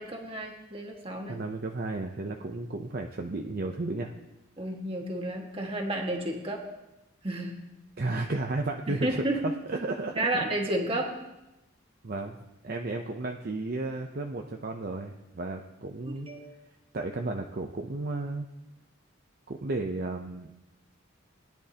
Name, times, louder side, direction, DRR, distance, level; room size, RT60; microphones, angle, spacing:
voice 1, 0.0-1.4 4.6-6.6 7.2-7.6 8.9-9.4 10.2-11.1 16.1-16.5, right 1 dB, 25° right, 1 dB, 1.7 m, -31 dB
voice 2, 1.3-4.1 8.0-9.1 9.4-10.3 10.9-11.0 12.0-12.4 12.6-16.3 16.9-18.5 19.5-20.5, right 2 dB, 45° right, 3 dB, 0.7 m, -33 dB
20.0 x 10.5 x 2.9 m, 0.95 s
head